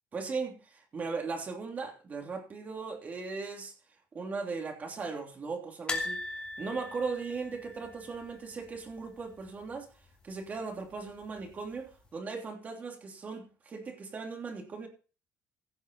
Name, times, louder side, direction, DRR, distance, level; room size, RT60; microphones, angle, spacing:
voice 1, 0.1-3.7 4.1-6.2 6.6-9.9 10.2-14.9, right 4 dB, 30° right, 3.1 m, -38 dB
sound 1, 5.9-8.9 9.2-9.4 9.7-9.8 11.0-11.5 12.0-12.1, left 2 dB, 20° left, 2.7 m, -39 dB
16.5 x 6.3 x 5.4 m
cardioid pair, 155°, 5 cm